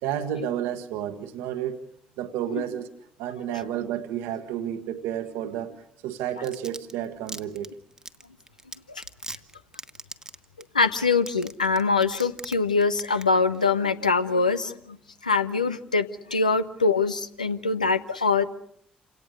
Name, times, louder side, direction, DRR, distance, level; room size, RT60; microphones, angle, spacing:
voice 1, 0.0-1.9 2.2-2.9 3.2-7.7, right 10 dB, 70° right, 1.4 m, -31 dB
Domestic sounds home sounds, 6.2-12.5 12.8-13.2 13.5-13.6, right 2 dB, 15° right, 1.4 m, -39 dB
voice 2, 10.7-15.0 15.2-18.4, left 4 dB, 90° left, 0.8 m, -23 dB
28.5 x 17.5 x 6.5 m
figure-of-eight pair, 45°, 4 cm